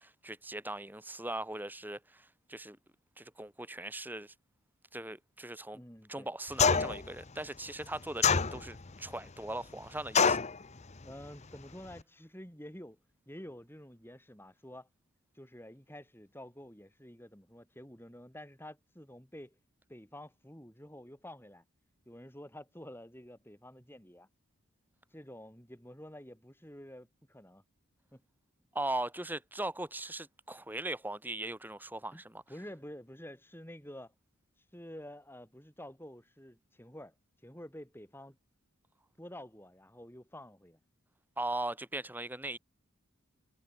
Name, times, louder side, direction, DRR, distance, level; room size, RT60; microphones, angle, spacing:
voice 1, 0.0-2.8 3.2-4.3 4.9-5.8 6.1-10.4 28.7-32.4 41.4-42.6, right 1 dB, 10° right, 3.1 m, -39 dB
voice 2, 5.7-6.3 11.0-13.0 13.3-14.9 15.3-19.6 19.9-21.6 22.1-24.3 25.1-27.6 28.1-28.2 32.1-32.2 32.5-34.1 34.7-37.1 37.4-38.4 39.2-40.8, left 1 dB, 10° left, 7.6 m, -49 dB
sound 1, 6.6-7.1 8.2-8.9 10.1-10.6, left 5 dB, 30° left, 0.8 m, -25 dB
head